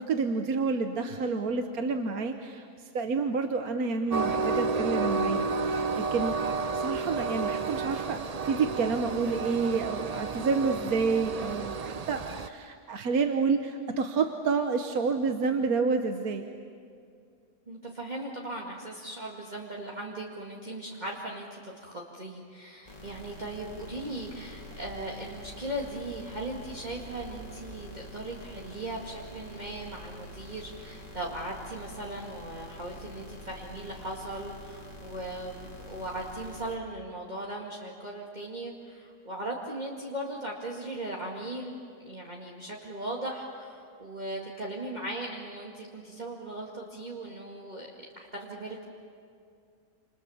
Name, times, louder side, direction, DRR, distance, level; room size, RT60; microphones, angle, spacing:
voice 1, 0.0-5.5 6.0-6.4 6.7-8.2 8.4-16.4, right 4 dB, 70° right, 6 dB, 1.5 m, -29 dB
Train, 4.1-12.5, right 4 dB, 45° right, 0.4 m, -31 dB
voice 2, 17.7-48.8, right 1 dB, 30° right, -3 dB, 2.2 m, -38 dB
sound 1, 22.9-36.8, left 1 dB, 25° left, 2.2 m, -46 dB
29.0 x 28.0 x 7.1 m, 2.4 s
omnidirectional pair, 1.6 m